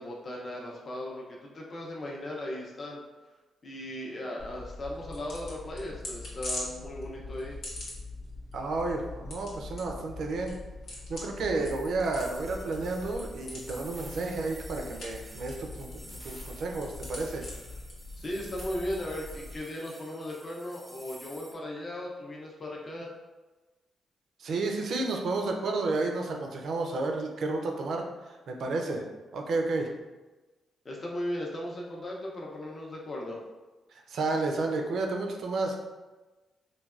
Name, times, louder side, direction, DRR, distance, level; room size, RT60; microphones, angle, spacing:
voice 1, 0.0-3.0 3.6-7.6 18.2-23.1 30.8-33.4, left 1 dB, 40° left, -3 dB, 0.5 m, -37 dB
sound 1, 4.4-19.6, left 2 dB, 80° left, 0.9 m, -42 dB
voice 2, 8.5-10.6 11.1-15.9 16.2-17.4 24.4-29.0 29.3-29.9 33.9-35.8, right 3 dB, 70° right, 2 dB, 0.4 m, -31 dB
sound 2, 11.7-21.5, right 1 dB, 10° right, 0.4 m, -50 dB
3.2 x 2.2 x 2.3 m, 1.2 s
cardioid pair, 90°, 0 cm